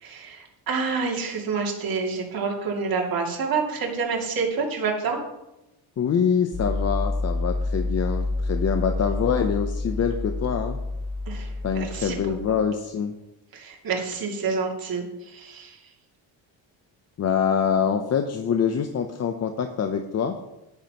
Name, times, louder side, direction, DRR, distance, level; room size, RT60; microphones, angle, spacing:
voice 1, 0.0-5.2 11.3-12.2 13.5-15.8, right 5 dB, 50° right, -1 dB, 2.5 m, -28 dB
voice 2, 6.0-10.8 11.6-13.1 17.2-20.4, left 7 dB, 35° left, 6 dB, 0.7 m, -25 dB
sound 1, 6.5-12.6, left 2 dB, 10° left, 1.4 m, -28 dB
11.0 x 10.5 x 3.0 m, 0.96 s
cardioid pair, 120°, 44 cm